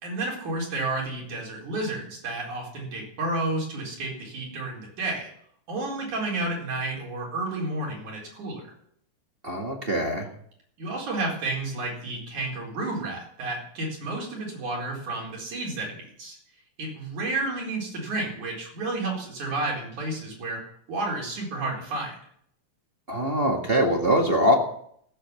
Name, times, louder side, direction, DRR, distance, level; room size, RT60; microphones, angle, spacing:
voice 1, 0.0-5.3 5.7-8.6 10.8-16.4 16.8-20.6 20.9-22.2, right 2 dB, 75° right, -2 dB, 5.8 m, -31 dB
voice 2, 9.4-10.3 23.1-24.5, equal, 25° right, 1 dB, 1.4 m, -23 dB
16.0 x 7.7 x 7.5 m, 0.67 s
omnidirectional pair, 3.5 m